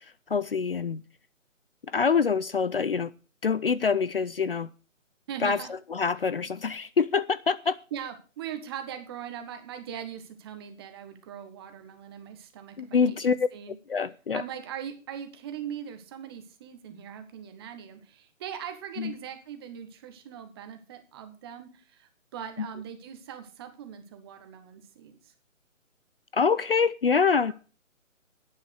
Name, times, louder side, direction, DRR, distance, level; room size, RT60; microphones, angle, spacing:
voice 1, 0.3-1.0 1.9-3.1 3.4-4.7 5.4-5.6 5.9-7.8 12.8-13.3 13.9-14.4 19.0-19.1 22.6-22.7 26.3-27.5, left 5 dB, 45° left, 0.7 m, -25 dB
voice 2, 5.3-5.7 7.9-13.8 14.3-25.3, right 9 dB, 20° right, 1.5 m, -40 dB
11.0 x 8.9 x 6.3 m
figure-of-eight pair, 155°, 39 cm